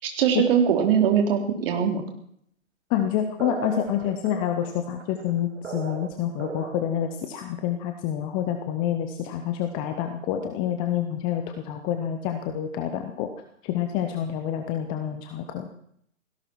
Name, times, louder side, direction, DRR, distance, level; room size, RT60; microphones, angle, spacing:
voice 1, 0.0-2.0, right 8 dB, 45° right, 3 dB, 3.7 m, -21 dB
voice 2, 2.9-13.3 13.6-15.7, left 10 dB, 10° left, 7 dB, 0.6 m, -28 dB
sound 1, 3.4-7.1, right 6 dB, 60° right, 2.4 m, -37 dB
17.0 x 16.5 x 4.6 m, 0.67 s
figure-of-eight pair, 135°, 40 cm